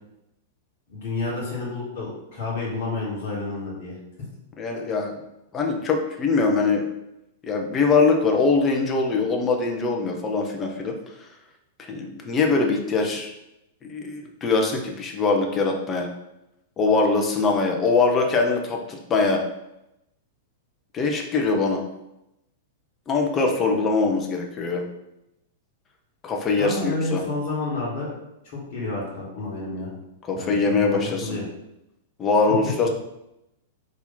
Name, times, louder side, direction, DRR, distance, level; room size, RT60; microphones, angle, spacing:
voice 1, 0.9-4.0 26.6-28.1 28.4-29.9 30.3-31.4, left 2 dB, 50° left, -4 dB, 1.4 m, -30 dB
voice 2, 4.6-5.1 5.5-6.9 7.4-10.9 11.9-13.3 13.9-16.1 16.8-19.4 20.9-21.8 23.1-24.8 26.2-27.2 30.3-31.4 32.2-32.9, left 4 dB, 25° left, 2 dB, 0.8 m, -22 dB
4.2 x 2.8 x 4.0 m, 0.88 s
figure-of-eight pair, 95°, 0 cm